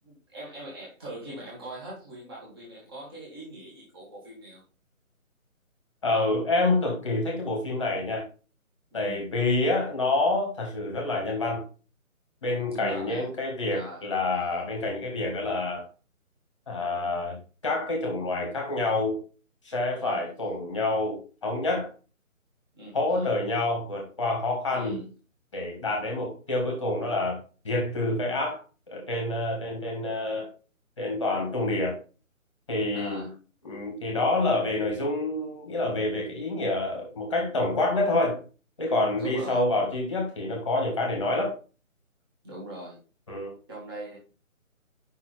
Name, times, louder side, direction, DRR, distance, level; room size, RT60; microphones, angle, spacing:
voice 1, 0.0-4.6 8.9-9.3 12.7-13.3 13.7-14.0 19.9-20.3 22.7-23.4 24.7-25.1 32.9-33.3 39.2-39.6 42.4-43.0 43.7-44.2, right 1 dB, 15° right, -5 dB, 1.9 m, -41 dB
voice 2, 6.0-8.2 8.9-11.6 12.4-15.8 16.7-17.4 17.6-19.2 19.6-21.9 22.9-24.9 25.5-28.6 28.9-30.5 31.0-32.0 32.7-33.3 33.6-38.4 38.8-41.5 43.3-43.5, left 2 dB, 20° left, 0 dB, 1.6 m, -27 dB
6.9 x 5.6 x 3.3 m, 0.35 s
hypercardioid pair, 170°, 42 cm